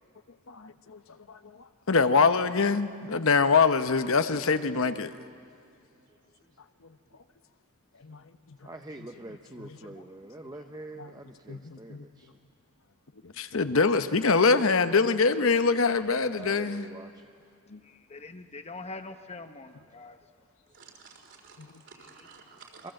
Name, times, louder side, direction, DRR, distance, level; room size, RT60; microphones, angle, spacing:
voice 1, 0.5-1.0 1.9-5.1 8.1-8.2 9.6-9.8 11.0-11.1 11.5-12.1 13.4-16.9 17.7-17.8 21.6-21.7, left 4 dB, 65° left, 0.9 m, -24 dB
voice 2, 8.6-12.3 16.3-17.2 22.8-22.9, right 2 dB, 15° right, 0.7 m, -45 dB
voice 3, 9.9-10.3 17.8-20.2, left 3 dB, 30° left, 1.0 m, -44 dB
voice 4, 20.7-22.9, right 5 dB, 55° right, 4.2 m, -52 dB
27.5 x 23.0 x 7.7 m
head